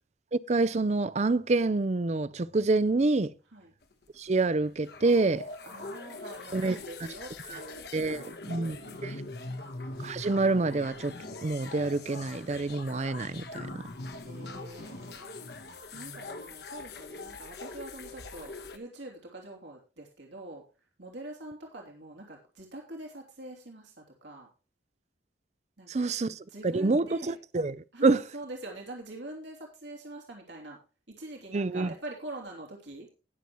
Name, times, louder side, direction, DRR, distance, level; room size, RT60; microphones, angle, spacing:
voice 1, 0.3-3.3 4.2-5.4 6.5-6.8 7.9-8.8 9.0-9.2 10.0-11.1 11.4-13.8 25.9-26.4 26.6-27.8 28.0-28.2 31.5-31.9, right 3 dB, 40° right, 0.5 m, -27 dB
sound 1, 3.8-18.8, left 3 dB, 60° left, 1.3 m, -42 dB
voice 2, 5.6-7.9 8.4-9.7 14.2-15.3 15.9-20.6 21.0-24.5 25.8-26.1 26.5-27.4 27.9-30.8 31.1-33.1, right 1 dB, 90° right, 3.1 m, -44 dB
19.5 x 7.0 x 3.1 m
head